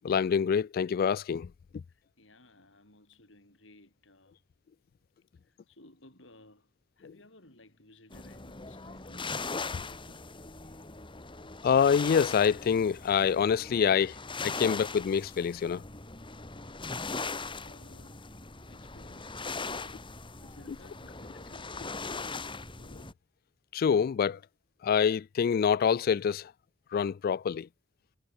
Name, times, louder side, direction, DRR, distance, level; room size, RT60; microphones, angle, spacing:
voice 1, 0.0-1.5 11.6-15.8 20.7-20.8 22.9-23.0 23.7-24.4 24.8-26.5 26.9-27.7, left 7 dB, 50° left, 0.3 m, -26 dB
voice 2, 1.9-4.4 5.4-10.3 17.5-20.1 20.4-22.5, left 1 dB, 70° left, 7.2 m, -58 dB
sound 1, 8.1-23.1, left 4 dB, 25° left, 2.6 m, -40 dB
head